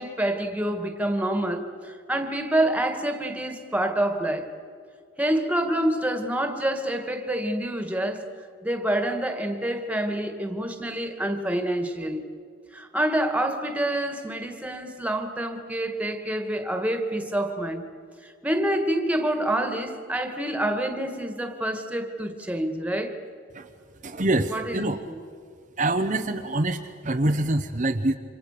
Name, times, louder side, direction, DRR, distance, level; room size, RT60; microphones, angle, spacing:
voice 1, 0.0-4.5 5.2-8.3 8.6-12.2 12.7-17.8 18.2-23.2 24.5-25.2, right 1 dB, 5° right, 2.1 m, -27 dB
voice 2, 24.0-25.0 25.8-28.1, right 2 dB, 35° right, 1.0 m, -25 dB
30.0 x 26.5 x 6.9 m
head